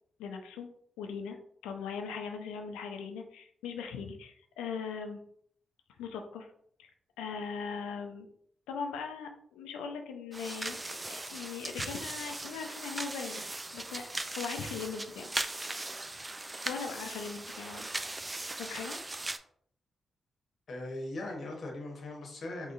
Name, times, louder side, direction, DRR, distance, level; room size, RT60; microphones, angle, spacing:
voice 1, 0.2-0.7 1.0-1.4 1.6-5.2 6.0-6.5 6.8-6.9 7.2-8.3 8.7-10.8 11.1-13.4 13.7-15.3 16.7-17.9 18.6-19.0, left 6 dB, 90° left, 4 dB, 0.4 m, -39 dB
sound 1, 10.3-19.4, right 2 dB, 25° right, 0.4 m, -39 dB
voice 2, 20.7-22.7, left 2 dB, 65° left, 1 dB, 1.0 m, -39 dB
3.7 x 3.0 x 2.4 m, 0.65 s
supercardioid pair, 45°, 0 cm